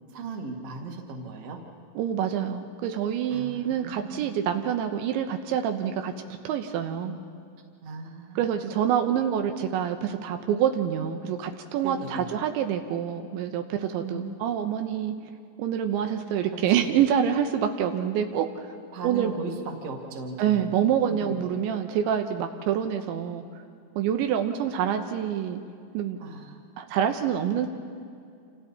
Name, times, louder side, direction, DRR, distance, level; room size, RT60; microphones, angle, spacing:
voice 1, 0.1-1.6 3.3-4.3 7.8-8.7 11.8-12.3 14.0-14.3 16.5-17.0 18.9-20.7 21.1-21.4 26.2-26.6, right 4 dB, 45° right, 1 dB, 2.3 m, -37 dB
voice 2, 2.0-6.1 6.4-7.2 8.4-15.1 15.6-18.5 19.0-19.3 20.4-23.4 24.0-25.6 25.9-26.2 26.8-27.7, right 9 dB, 80° right, 6 dB, 3.2 m, -26 dB
28.0 x 28.0 x 4.3 m, 2.3 s
omnidirectional pair, 5.4 m